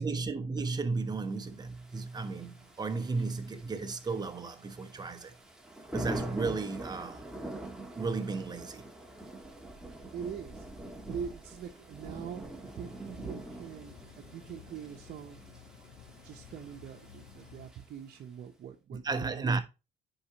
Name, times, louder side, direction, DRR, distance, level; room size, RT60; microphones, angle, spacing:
voice 1, 0.0-5.3 5.9-7.2 7.9-8.8 18.9-19.6, right 4 dB, 25° right, 1.1 m, -34 dB
Thunder / Rain, 1.6-18.2, right 1 dB, 5° right, 1.4 m, -45 dB
voice 2, 10.1-10.6 11.1-15.4 16.2-19.6, right 8 dB, 60° right, 1.0 m, -43 dB
sound 1, 12.6-17.7, left 8 dB, 60° left, 1.1 m, -54 dB
9.7 x 5.0 x 3.0 m
cardioid pair, 110°, 17 cm